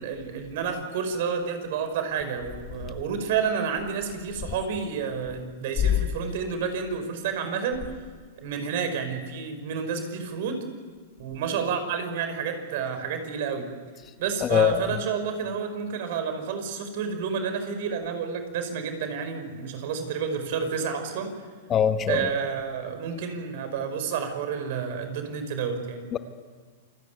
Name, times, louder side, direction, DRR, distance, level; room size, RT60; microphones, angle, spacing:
voice 1, 0.0-7.8 8.4-10.6 11.2-13.7 14.2-21.3 22.1-26.1, right 6 dB, 60° right, 8 dB, 5.2 m, -30 dB
voice 2, 14.4-14.9 21.7-22.3 26.1-26.2, left 9 dB, 25° left, 9 dB, 1.3 m, -22 dB
28.0 x 19.0 x 9.3 m, 1.5 s
hypercardioid pair, 140°, 0 cm